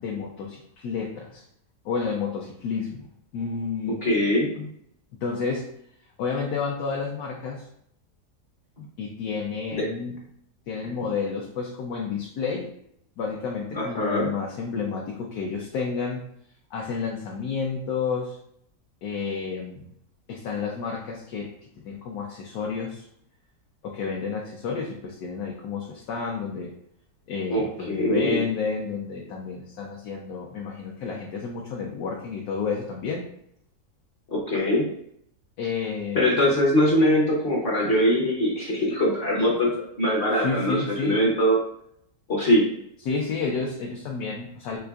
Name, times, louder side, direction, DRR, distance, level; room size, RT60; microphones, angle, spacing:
voice 1, 0.0-1.4 1.8-3.1 3.3-4.0 5.2-5.7 6.2-7.7 9.0-10.2 10.7-12.7 13.2-16.2 16.7-18.4 19.0-19.9 20.3-21.5 21.8-23.1 23.8-26.7 27.3-33.3 35.6-36.4 40.3-41.2 43.0-44.8, left 5 dB, 75° left, -1 dB, 1.0 m, -30 dB
voice 2, 4.0-4.7 8.8-8.9 9.7-9.8 13.7-14.3 27.5-28.4 34.3-34.9 36.1-39.7 40.0-41.6 42.3-42.7, equal, 50° left, -4 dB, 0.8 m, -22 dB
4.6 x 2.4 x 2.3 m, 0.70 s
omnidirectional pair, 1.7 m